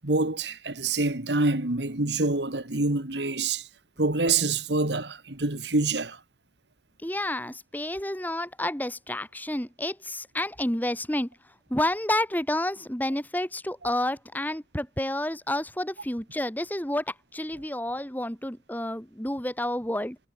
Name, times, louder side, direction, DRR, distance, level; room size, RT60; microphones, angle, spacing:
voice 1, 0.0-3.7 4.0-6.2, right 3 dB, 85° right, 2.3 m, -26 dB
voice 2, 7.0-11.3 11.7-20.2, left 1 dB, 10° left, 1.7 m, -30 dB
head